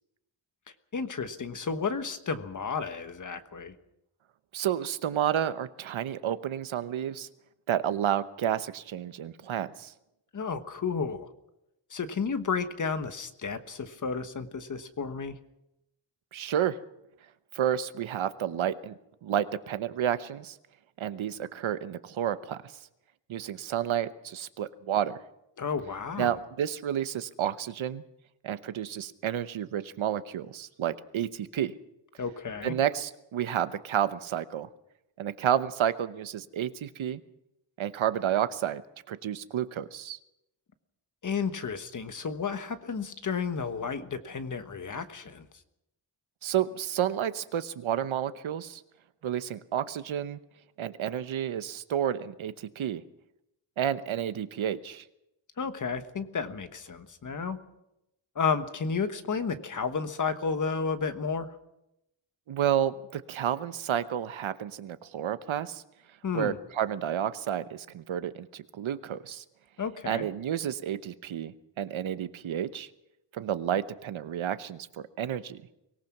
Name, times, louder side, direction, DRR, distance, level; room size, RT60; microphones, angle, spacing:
voice 1, 0.9-3.8 10.3-11.3 11.9-15.4 25.6-26.4 32.2-32.8 41.2-45.5 55.6-57.6 58.3-61.5 66.2-66.6 69.8-70.2, left 5 dB, 40° left, 9 dB, 1.3 m, -32 dB
voice 2, 4.5-7.3 7.7-9.9 16.3-16.8 17.5-18.9 19.2-20.6 21.0-22.6 23.3-25.2 26.2-28.0 28.4-31.7 32.6-34.7 35.2-37.2 37.8-38.8 39.1-40.2 46.4-48.8 49.2-50.4 50.8-53.0 53.8-55.0 62.5-65.8 66.3-69.4 70.1-72.9 73.3-75.6, right 10 dB, 85° right, 12 dB, 1.1 m, -30 dB
24.0 x 18.5 x 6.0 m, 0.85 s
wide cardioid pair, 180°, 46 cm